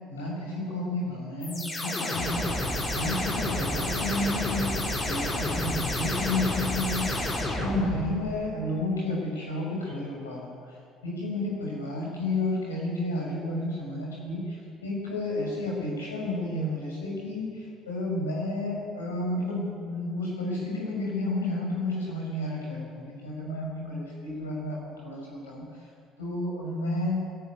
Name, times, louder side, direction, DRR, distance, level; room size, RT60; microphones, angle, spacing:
voice 1, 0.1-2.5 2.9-7.3 7.6-10.6 11.0-25.9 26.2-27.2, left 2 dB, 80° left, -3 dB, 6.9 m, -31 dB
sound 1, 1.4-8.2, left 1 dB, 30° left, 5.9 m, -30 dB
21.0 x 14.0 x 9.8 m, 2.3 s
figure-of-eight pair, 55°, 0 cm